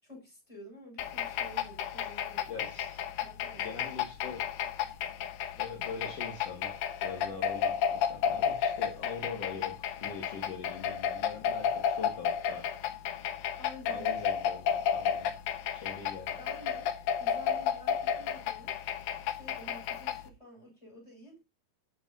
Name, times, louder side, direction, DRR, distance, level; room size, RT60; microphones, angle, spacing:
voice 1, 0.0-2.6 3.2-4.1 13.5-14.1 16.0-16.9 17.2-18.7 19.3-21.4, equal, 10° left, 7.1 m, -50 dB
sound 1, 1.0-20.3, left 8 dB, 85° left, 2.5 m, -33 dB
voice 2, 2.5-3.0 3.6-4.5 5.6-12.7 13.9-15.3 15.7-16.4, left 5 dB, 60° left, 2.7 m, -42 dB
13.0 x 8.1 x 2.8 m
omnidirectional pair, 3.4 m